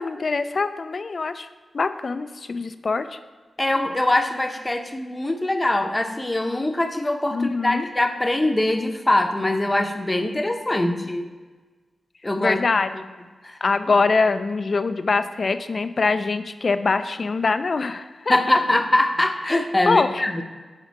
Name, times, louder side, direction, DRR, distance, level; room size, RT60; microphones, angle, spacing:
voice 1, 0.0-1.5 1.7-3.1 7.3-7.9 10.7-11.1 12.4-12.9 13.6-18.4 19.9-20.4, left 4 dB, 55° left, 11 dB, 0.4 m, -23 dB
voice 2, 3.6-11.3 12.2-12.6 12.9-13.0 13.4-13.6 18.3-20.4, left 1 dB, 25° left, 5 dB, 0.8 m, -23 dB
8.1 x 3.6 x 4.7 m, 1.4 s
cardioid pair, 45°, 0 cm